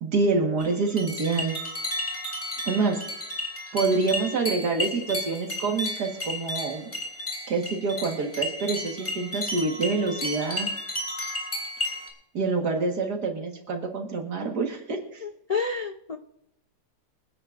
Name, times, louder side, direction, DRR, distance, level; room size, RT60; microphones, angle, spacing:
voice 1, 0.0-1.6 2.7-3.0 3.7-6.9 7.5-10.7 12.3-15.2, right 4 dB, 75° right, 1 dB, 2.1 m, -26 dB
sound 1, 0.6-12.1, left 1 dB, 30° left, 2.8 m, -33 dB
voice 2, 15.2-16.2, left 4 dB, 80° left, 5 dB, 0.3 m, -29 dB
25.5 x 9.8 x 2.5 m, 0.76 s
omnidirectional pair, 1.7 m